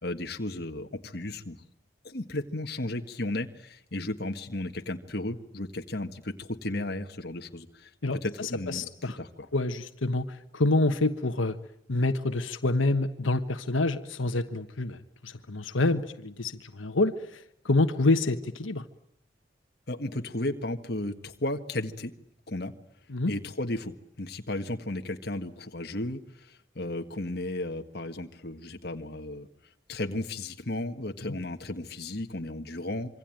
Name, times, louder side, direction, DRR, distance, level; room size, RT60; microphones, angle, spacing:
voice 1, 0.0-1.6 2.0-7.9 8.2-9.5 19.9-22.1 22.5-22.7 23.3-29.5 29.9-33.2, left 1 dB, 55° left, 5 dB, 1.7 m, -34 dB
voice 2, 8.0-9.2 9.5-11.6 11.9-18.8 23.1-23.3, left 2 dB, 85° left, 8 dB, 1.3 m, -27 dB
26.5 x 24.5 x 9.1 m, 0.72 s
head